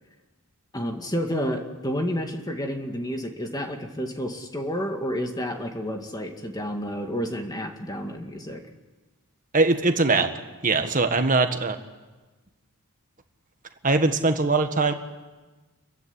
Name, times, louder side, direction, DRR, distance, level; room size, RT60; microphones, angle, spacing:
voice 1, 0.7-8.6, equal, 15° left, 3 dB, 2.2 m, -30 dB
voice 2, 9.5-10.3 10.6-11.8 13.8-14.9, right 3 dB, 35° right, 7 dB, 1.6 m, -21 dB
28.5 x 15.0 x 10.0 m, 1.2 s
head